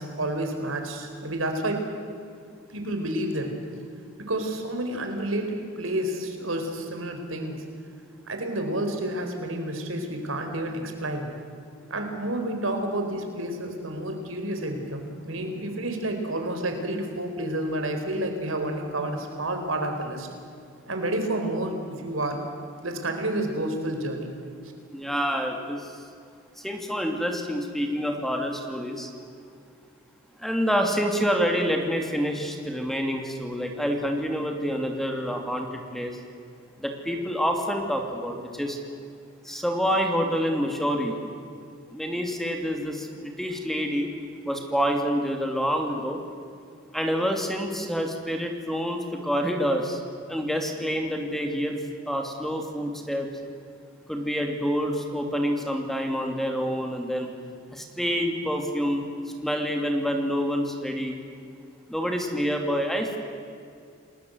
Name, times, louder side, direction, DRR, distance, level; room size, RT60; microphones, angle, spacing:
voice 1, 0.0-1.8 2.7-3.5 4.2-7.6 8.3-11.3 11.9-20.3 20.9-22.4 22.8-24.3, right 1 dB, 85° right, 5 dB, 4.4 m, -30 dB
voice 2, 24.9-25.9 26.6-29.1 30.4-36.2 36.8-38.8 39.4-41.1 41.9-44.1 44.4-46.2 46.9-50.0 50.3-51.8 52.1-53.3 54.1-57.3 57.7-59.1 59.4-61.1 61.9-63.2, equal, ahead, 3 dB, 2.8 m, -27 dB
29.5 x 20.0 x 8.0 m, 2.4 s
head